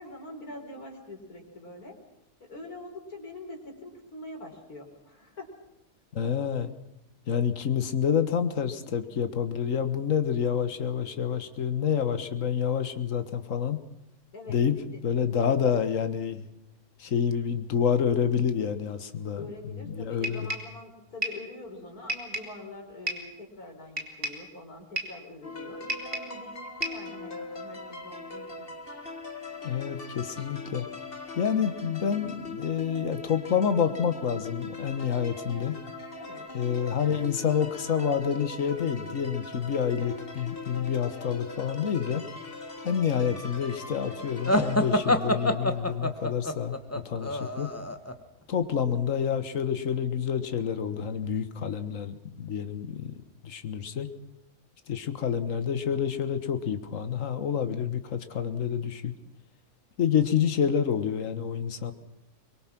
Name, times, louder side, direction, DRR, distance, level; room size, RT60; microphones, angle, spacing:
voice 1, 0.0-2.0 2.4-5.5 14.3-15.8 19.3-28.7 36.1-36.5, left 2 dB, 75° left, 1 dB, 4.9 m, -44 dB
voice 2, 6.1-6.7 7.3-13.8 14.5-14.8 15.0-16.5 17.0-19.5 19.9-20.5 29.6-30.8 31.3-35.8 36.5-42.2 42.8-46.7 47.0-47.7 48.5-53.2 53.4-54.1 54.9-59.1 60.0-61.9, left 7 dB, 60° left, 9 dB, 1.7 m, -28 dB
sound 1, 20.2-20.8 21.2-21.5 22.1-22.6 23.1-23.3 24.0-24.5 25.0-25.2 25.9-26.4 26.8-27.1, right 1 dB, 35° right, 3.1 m, -33 dB
sound 2, 25.4-44.8, left 3 dB, 40° left, 2.0 m, -41 dB
sound 3, 44.5-48.1, left 1 dB, 10° left, 1.1 m, -26 dB
24.0 x 22.5 x 6.1 m, 0.85 s
omnidirectional pair, 1.6 m